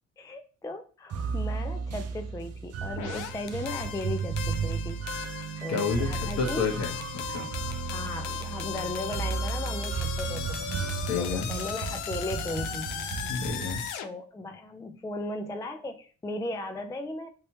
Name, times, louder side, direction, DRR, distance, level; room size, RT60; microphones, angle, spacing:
voice 1, 0.2-5.0 5.6-6.6 7.9-10.7 11.2-12.9 14.0-17.3, left 2 dB, 10° left, 6 dB, 0.3 m, -36 dB
sound 1, 1.1-13.9, right 5 dB, 55° right, 0.6 m, -34 dB
sound 2, 3.0-14.1, left 9 dB, 85° left, 0.5 m, -37 dB
voice 2, 5.7-6.1 6.4-7.5 11.0-11.5 13.3-13.8, left 5 dB, 55° left, 3 dB, 1.1 m, -30 dB
3.2 x 3.0 x 2.9 m, 0.38 s
cardioid pair, 90°, 30 cm